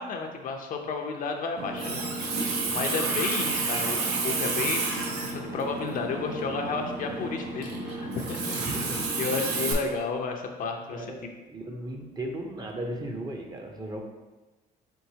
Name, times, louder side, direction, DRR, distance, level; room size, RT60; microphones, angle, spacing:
voice 1, 0.0-8.7 9.2-11.1, left 4 dB, 55° left, 3 dB, 0.6 m, -32 dB
Water tap faucet, 1.6-9.7, right 3 dB, 85° right, 0.9 m, -30 dB
voice 2, 8.6-9.1 10.9-14.0, right 1 dB, 25° right, 2 dB, 0.6 m, -36 dB
4.5 x 3.8 x 2.8 m, 1.1 s
cardioid pair, 110°, 17 cm